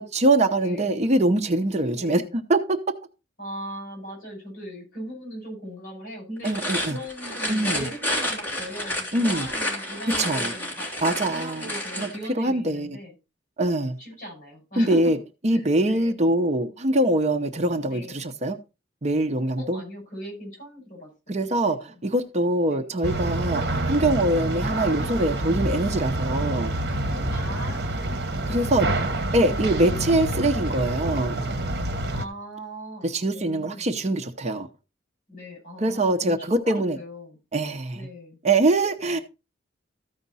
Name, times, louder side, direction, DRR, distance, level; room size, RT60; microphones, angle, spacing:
voice 1, 0.0-2.8 6.4-7.0 7.5-7.8 9.1-9.5 10.2-10.5 11.0-12.1 12.3-13.0 13.6-14.0 14.8-15.2 15.4-18.6 19.0-19.8 21.3-26.7 28.5-28.9 29.3-31.4 33.0-34.7 35.8-37.0 37.5-38.1 38.4-39.2, right 1 dB, 40° right, 0.7 m, -23 dB
voice 2, 0.6-1.0 1.9-2.4 3.4-6.5 6.9-13.1 14.0-15.0 15.5-16.2 17.8-18.2 19.6-21.9 22.7-23.0 27.3-30.1 32.1-33.9 35.3-37.4 37.9-38.4 39.0-39.2, equal, 50° left, 5.8 m, -40 dB
sound 1, 6.4-12.2, left 1 dB, 10° left, 3.4 m, -30 dB
sound 2, 23.0-32.2, right 1 dB, 60° right, 1.2 m, -27 dB
14.0 x 5.1 x 4.0 m
head